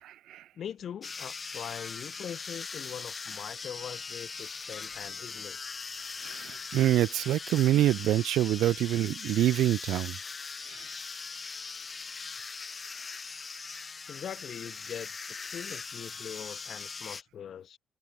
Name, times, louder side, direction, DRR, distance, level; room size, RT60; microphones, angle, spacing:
voice 1, 0.0-0.4 6.2-10.2 10.7-10.9, right 13 dB, 80° right, 1.3 m, -26 dB
voice 2, 0.5-5.6 14.1-17.8, left 9 dB, 60° left, 4.4 m, -42 dB
sound 1, 1.0-17.2, left 4 dB, 35° left, 2.5 m, -40 dB
open air
cardioid pair, 90°, 0 cm